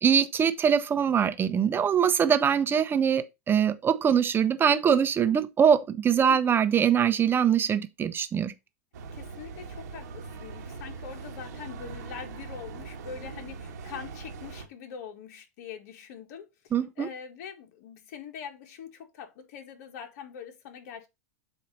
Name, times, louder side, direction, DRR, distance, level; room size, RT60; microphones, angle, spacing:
voice 1, 0.0-8.5 16.7-17.1, right 8 dB, 25° right, 0.9 m, -23 dB
sound 1, 8.9-14.7, right 4 dB, 80° right, 1.5 m, -41 dB
voice 2, 9.1-21.1, left 7 dB, 65° left, 1.7 m, -43 dB
7.7 x 2.9 x 5.4 m
hypercardioid pair, 115°, 9 cm